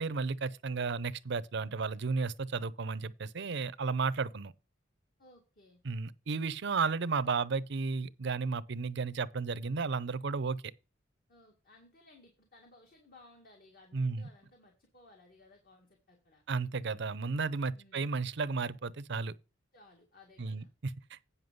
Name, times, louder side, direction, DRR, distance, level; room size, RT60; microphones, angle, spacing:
voice 1, 0.0-4.5 5.8-10.7 13.9-14.3 16.5-19.3 20.4-21.3, right 4 dB, 65° right, 0.6 m, -33 dB
voice 2, 5.2-5.8 11.3-16.4 17.7-18.1 19.7-20.7, left 2 dB, 50° left, 2.1 m, -60 dB
9.6 x 5.7 x 5.2 m
head